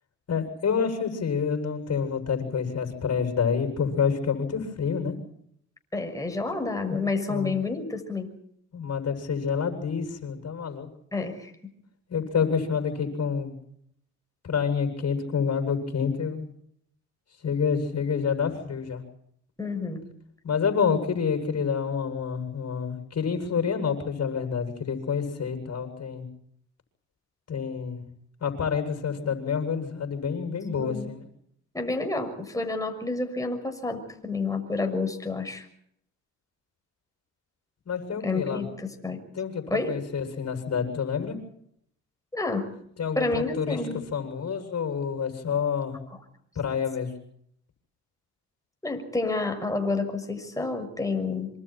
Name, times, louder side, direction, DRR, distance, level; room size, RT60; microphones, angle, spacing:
voice 1, 0.3-5.1 6.8-7.0 7.3-7.5 8.7-10.9 12.1-13.5 14.4-16.5 17.4-19.0 20.4-26.3 27.5-28.0 28.4-31.2 37.9-38.6 39.3-41.4 43.0-43.8 44.1-46.0 46.6-47.1, left 6 dB, 45° left, 6 dB, 7.7 m, -28 dB
voice 2, 5.9-8.3 11.1-11.5 19.6-20.0 30.8-31.1 31.7-35.7 38.2-39.2 39.7-40.0 42.3-42.7 43.2-44.1 48.8-51.5, left 3 dB, 10° left, 5 dB, 6.3 m, -29 dB
26.5 x 25.5 x 4.5 m, 0.70 s
supercardioid pair, 70°, 35 cm